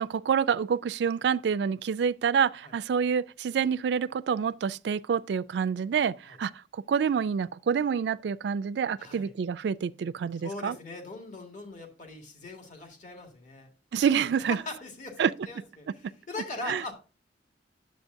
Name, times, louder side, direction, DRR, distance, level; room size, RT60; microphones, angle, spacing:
voice 1, 0.0-6.5 6.9-10.8 13.9-14.6 15.2-15.3 16.7-16.8, right 7 dB, 70° right, 0.3 m, -27 dB
voice 2, 9.0-9.3 10.4-13.7 14.5-16.9, left 3 dB, 45° left, 1.9 m, -41 dB
10.0 x 7.6 x 2.6 m
head